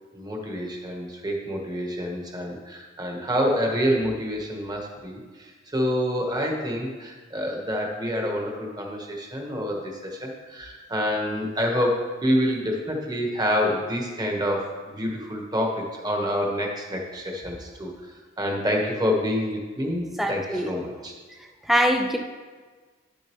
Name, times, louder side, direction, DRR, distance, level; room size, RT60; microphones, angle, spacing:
voice 1, 0.1-21.1, equal, 20° right, 0 dB, 1.2 m, -27 dB
voice 2, 20.2-20.7 21.7-22.2, equal, ahead, 3 dB, 0.5 m, -22 dB
10.5 x 6.5 x 3.0 m, 1.4 s
head